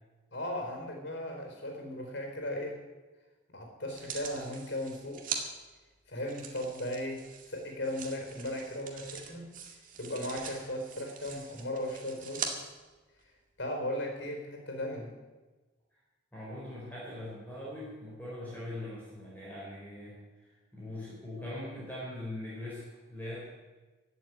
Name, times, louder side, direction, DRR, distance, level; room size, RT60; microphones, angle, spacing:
voice 1, 0.3-2.8 3.5-5.2 6.1-9.5 10.0-12.5 13.6-15.1, left 1 dB, 60° left, 3 dB, 4.6 m, -37 dB
sound 1, 3.9-5.4 6.3-12.5 13.2-13.3, right 6 dB, 40° right, 2.1 m, -42 dB
voice 2, 16.3-23.5, left 1 dB, 10° left, -8 dB, 4.8 m, -41 dB
16.0 x 8.1 x 9.6 m, 1.2 s
head